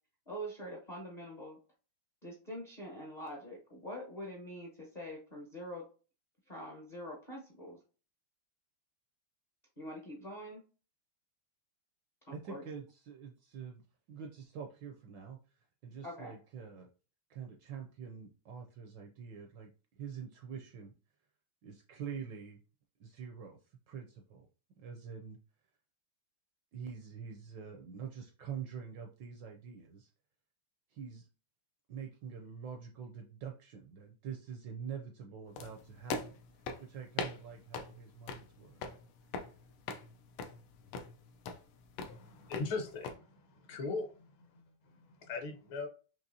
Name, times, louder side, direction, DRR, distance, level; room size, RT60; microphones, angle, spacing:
voice 1, 0.3-1.6 2.2-5.9 6.5-7.8 9.8-10.6 12.3-12.7 16.0-16.3, equal, 45° left, -2 dB, 0.5 m, -44 dB
voice 2, 12.3-16.9 17.3-20.9 21.6-22.6 23.0-24.5 24.8-25.4 26.7-30.1 30.9-31.3 31.9-36.4 36.8-38.8, right 7 dB, 75° right, 3 dB, 1.0 m, -46 dB
sound 1, 35.6-43.1, left 4 dB, 90° left, 1.6 m, -43 dB
voice 3, 42.0-45.9, left 4 dB, 70° left, 4 dB, 1.6 m, -40 dB
5.4 x 2.9 x 2.6 m, 0.37 s
omnidirectional pair, 2.4 m